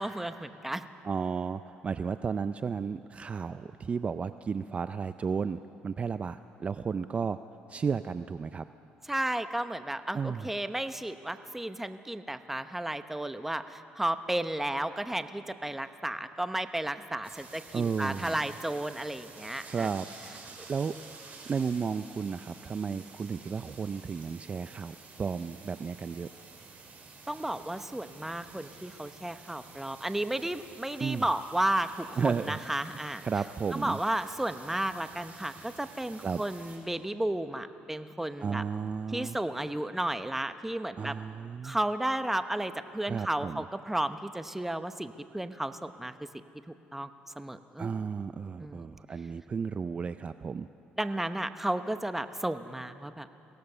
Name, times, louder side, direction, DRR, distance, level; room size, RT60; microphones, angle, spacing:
voice 1, 0.0-0.9 9.1-19.9 27.3-33.2 33.7-38.6 39.1-41.2 41.6-46.1 46.9-47.1 47.4-47.9 48.6-49.0 51.0-53.3, right 1 dB, 5° right, 10 dB, 0.9 m, -33 dB
voice 2, 1.0-7.4 7.7-8.7 10.1-10.5 17.7-18.4 19.7-20.4 20.7-21.0 21.5-26.3 31.0-31.2 32.2-32.6 33.2-34.0 36.2-36.4 38.4-39.4 41.0-41.8 43.0-43.6 47.8-50.7, right 6 dB, 35° right, 12 dB, 0.5 m, -33 dB
sound 1, 17.2-36.8, right 4 dB, 50° right, 5.2 m, -51 dB
23.0 x 17.0 x 6.8 m, 2.8 s
cardioid pair, 90°, 4 cm